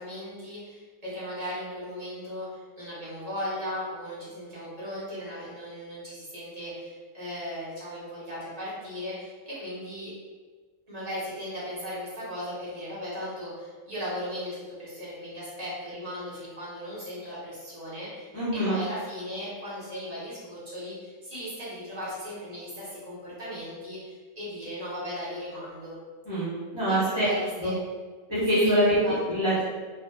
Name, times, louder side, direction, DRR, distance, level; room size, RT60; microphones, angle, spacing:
voice 1, 0.0-10.1 10.9-26.0 26.8-27.8 28.8-29.2 29.5-29.6, equal, 35° right, -9 dB, 0.9 m, -37 dB
voice 2, 18.3-18.8 26.2-27.2 27.6-27.7 28.3-29.0 29.3-29.6, equal, 25° left, -11 dB, 0.5 m, -24 dB
2.6 x 2.3 x 2.2 m, 1.4 s
omnidirectional pair, 1.4 m